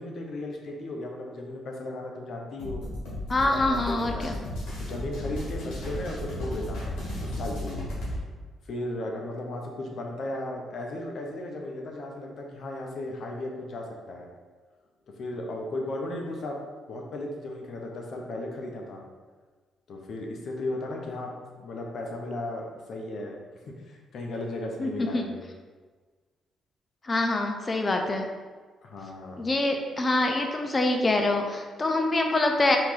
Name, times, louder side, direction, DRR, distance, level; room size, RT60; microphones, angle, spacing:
voice 1, 0.0-2.8 3.5-4.3 4.8-7.9 8.7-14.3 15.2-16.6 16.9-19.0 19.9-23.4 23.7-25.4 28.8-29.4, left 1 dB, 60° left, 1 dB, 0.8 m, -35 dB
sound 1, 2.6-8.2, left 1 dB, 85° left, 1.5 m, -34 dB
voice 2, 3.3-4.4 24.8-25.3 27.0-28.3 29.4-32.8, left 2 dB, 30° left, 4 dB, 0.6 m, -25 dB
4.4 x 3.1 x 3.8 m, 1.4 s
cardioid pair, 90°, 0 cm